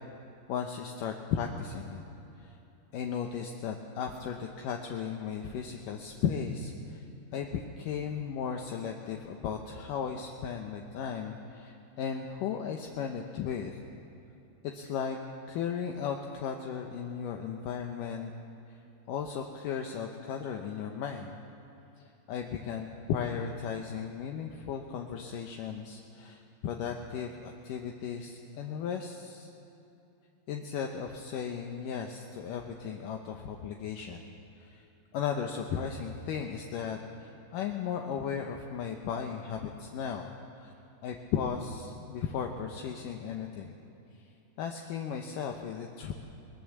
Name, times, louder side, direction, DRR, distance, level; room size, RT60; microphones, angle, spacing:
voice 1, 0.5-2.0 2.4-2.6 2.9-7.0 7.3-13.8 14.7-15.2 15.5-18.3 18.7-18.8 19.1-21.4 22.0-29.5 30.5-34.3 34.6-34.8 35.1-40.7 41.0-43.8 44.6-46.1, left 7 dB, 75° left, 3 dB, 2.5 m, -36 dB
21.0 x 20.0 x 7.3 m, 2.9 s
omnidirectional pair, 4.1 m